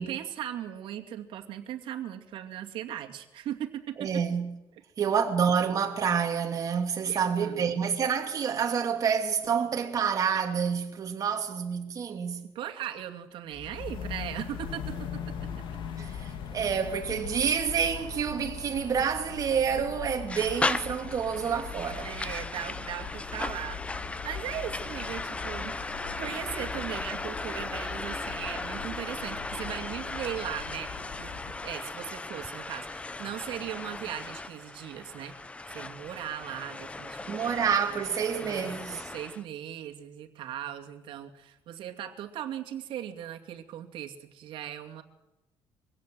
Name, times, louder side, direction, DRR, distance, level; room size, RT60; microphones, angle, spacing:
voice 1, 0.0-4.1 7.1-7.8 12.5-15.3 22.0-25.7 26.2-31.4 31.6-35.3 35.7-37.3 37.9-38.0 38.4-45.0, right 11 dB, 75° right, 2.4 m, -38 dB
voice 2, 4.0-4.5 5.0-12.5 16.0-22.1 37.3-39.0, right 7 dB, 40° right, 2.7 m, -28 dB
sound 1, 13.5-31.8, left 7 dB, 70° left, 2.6 m, -41 dB
sound 2, 20.3-39.4, left 2 dB, 15° left, 0.8 m, -37 dB
23.0 x 17.0 x 7.7 m
cardioid pair, 145°, 9 cm